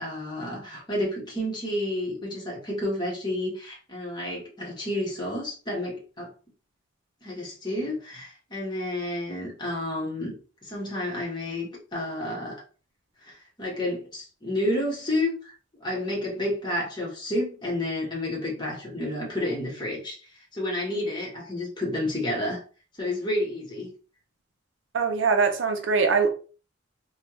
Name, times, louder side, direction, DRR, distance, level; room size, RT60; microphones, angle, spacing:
voice 1, 0.0-6.3 7.2-10.4 10.6-12.6 13.2-15.5 15.8-20.2 20.5-22.6 23.0-23.9, left 1 dB, 25° left, 1.2 m, -30 dB
voice 2, 24.9-26.3, right 5 dB, 70° right, 0.5 m, -22 dB
3.2 x 2.3 x 2.9 m
head